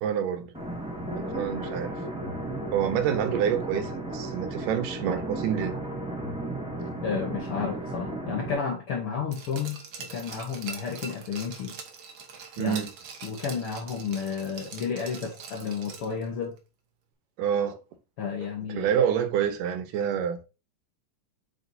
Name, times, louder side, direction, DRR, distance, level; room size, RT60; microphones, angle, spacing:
voice 1, 0.0-0.5 1.2-2.0 2.7-5.8 12.6-12.9 17.4-17.8 18.7-20.4, right 8 dB, 80° right, 2.5 m, -27 dB
sound 1, 0.5-8.5, right 1 dB, 5° right, 1.0 m, -34 dB
voice 2, 7.0-11.7 12.6-12.8 13.2-16.6 18.2-18.9, left 6 dB, 75° left, 1.3 m, -32 dB
Glass, 9.3-16.3 16.6-16.7, right 5 dB, 65° right, 1.2 m, -43 dB
8.0 x 5.1 x 2.7 m
omnidirectional pair, 3.8 m